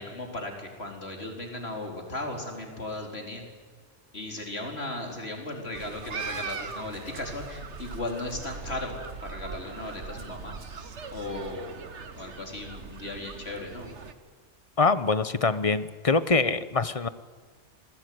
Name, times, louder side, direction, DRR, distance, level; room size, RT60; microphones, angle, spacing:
voice 1, 0.0-3.4 4.1-8.9 9.2-10.6 11.1-11.7 12.1-13.9, left 2 dB, 60° left, 2 dB, 4.4 m, -36 dB
sound 1, 5.7-14.1, right 5 dB, 75° right, 1.7 m, -40 dB
voice 2, 14.8-17.1, left 4 dB, 30° left, 13 dB, 1.0 m, -24 dB
26.0 x 19.5 x 9.5 m, 1.5 s
omnidirectional pair, 1.2 m